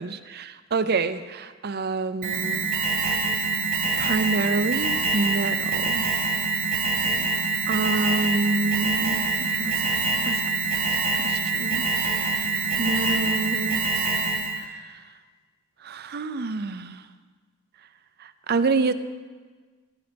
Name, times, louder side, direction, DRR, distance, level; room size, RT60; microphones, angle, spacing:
voice 1, 0.0-2.7 3.1-3.3 4.0-6.1 7.7-9.9 10.3-10.4 10.9-12.5 12.8-13.8 14.6-14.9 15.8-17.0 18.2-18.9, right 3 dB, 50° right, 11 dB, 0.6 m, -28 dB
Alarm, 2.2-14.6, right 4 dB, 75° right, 2.8 m, -25 dB
16.5 x 10.0 x 5.2 m, 1.4 s
head